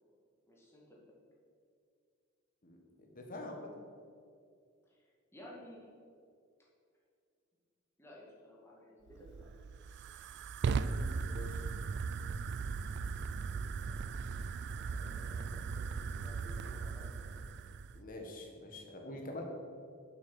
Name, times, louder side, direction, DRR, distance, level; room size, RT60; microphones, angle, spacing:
voice 1, 0.5-1.1 4.9-5.9 8.0-9.5 13.8-17.3 18.9-19.4, left 1 dB, 10° left, -5 dB, 1.9 m, -56 dB
voice 2, 2.6-3.7 10.8-11.6 17.9-19.4, left 1 dB, 40° left, 2 dB, 1.4 m, -46 dB
Fire, 9.1-18.0, right 5 dB, 55° right, 0.3 m, -38 dB
7.4 x 6.2 x 6.2 m, 2.3 s
head